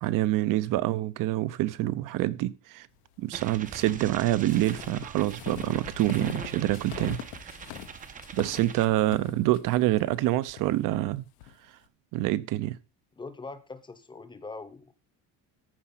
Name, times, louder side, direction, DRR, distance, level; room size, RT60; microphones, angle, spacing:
voice 1, 0.0-2.9 3.2-7.2 8.3-11.2 12.1-12.8, right 15 dB, 55° right, 0.8 m, -26 dB
sound 1, 3.3-8.9, right 7 dB, 20° right, 0.7 m, -42 dB
sound 2, 3.6-11.5, left 13 dB, 85° left, 1.2 m, -43 dB
voice 2, 13.2-14.9, left 3 dB, 10° left, 0.8 m, -42 dB
14.0 x 5.1 x 5.7 m
cardioid pair, 165°, 38 cm